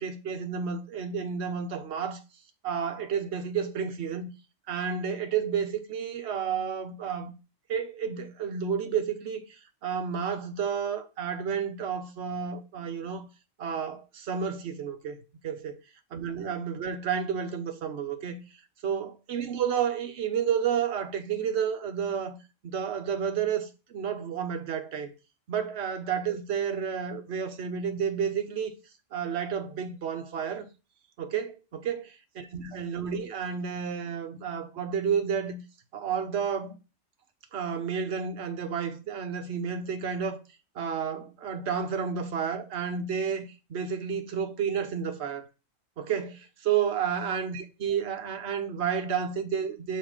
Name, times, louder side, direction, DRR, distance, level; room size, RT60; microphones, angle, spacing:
voice 1, 0.0-2.2 2.6-4.3 4.7-7.3 7.7-13.3 13.6-15.2 15.4-15.7 16.1-18.4 18.8-22.4 22.6-25.1 25.5-28.7 29.1-30.7 31.2-32.0 32.4-35.6 35.9-36.8 37.5-40.4 40.7-45.4 46.0-50.0, right 7 dB, 55° right, 1.1 m, -31 dB
5.6 x 3.7 x 4.9 m
omnidirectional pair, 1.4 m